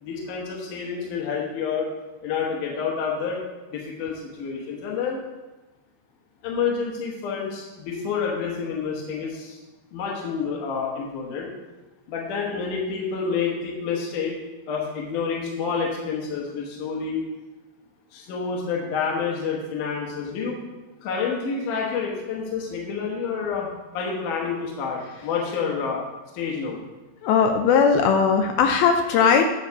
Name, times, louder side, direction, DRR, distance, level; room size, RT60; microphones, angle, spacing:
voice 1, 0.0-1.9 2.2-3.4 3.7-5.2 6.4-9.6 9.9-11.5 12.1-14.4 14.7-17.2 18.1-20.6 21.0-23.7 23.9-26.0 26.3-26.8, left 5 dB, 65° left, -2 dB, 2.4 m, -28 dB
voice 2, 27.2-29.4, left 6 dB, 80° left, 4 dB, 2.4 m, -18 dB
9.5 x 4.0 x 6.6 m, 1.1 s
omnidirectional pair, 4.3 m